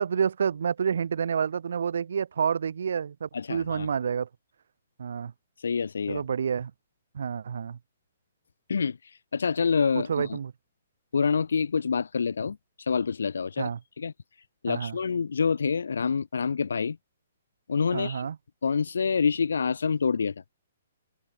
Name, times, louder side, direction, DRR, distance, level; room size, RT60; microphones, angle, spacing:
voice 1, 0.0-4.3 5.0-5.3 6.1-6.7 7.1-7.8 9.9-10.5 13.6-13.8 14.7-15.0 17.9-18.4, right 7 dB, 75° right, 0.4 m, -29 dB
voice 2, 3.3-3.9 5.6-6.2 8.7-9.0 9.3-10.4 11.1-13.7 14.0-14.1 14.6-17.0 17.7-18.3 18.6-20.3, left 5 dB, 90° left, 0.5 m, -27 dB
hypercardioid pair, 155°, 0 cm